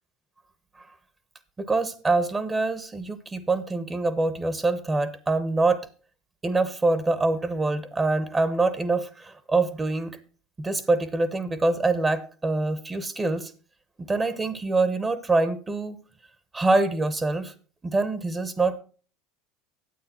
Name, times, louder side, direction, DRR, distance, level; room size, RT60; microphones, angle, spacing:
voice 1, 1.6-5.9 6.4-10.2 10.6-13.5 14.0-16.0 16.5-17.5 17.8-18.8, right 3 dB, 20° right, 1.0 m, -25 dB
9.5 x 8.4 x 4.3 m
hypercardioid pair, 75°, 0 cm